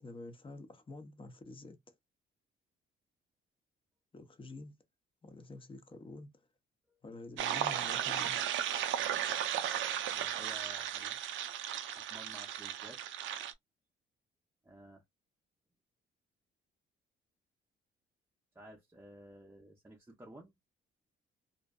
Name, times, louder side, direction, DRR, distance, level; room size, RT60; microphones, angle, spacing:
voice 1, 0.0-1.9 4.1-4.8 5.2-6.5 7.0-8.4, left 2 dB, 25° left, 0.7 m, -48 dB
sound 1, 7.4-13.5, right 10 dB, 75° right, 0.4 m, -35 dB
voice 2, 10.1-11.2 12.0-13.0 14.6-15.0 18.5-20.5, right 1 dB, 10° right, 0.6 m, -53 dB
2.6 x 2.1 x 2.2 m
cardioid pair, 90°, 20 cm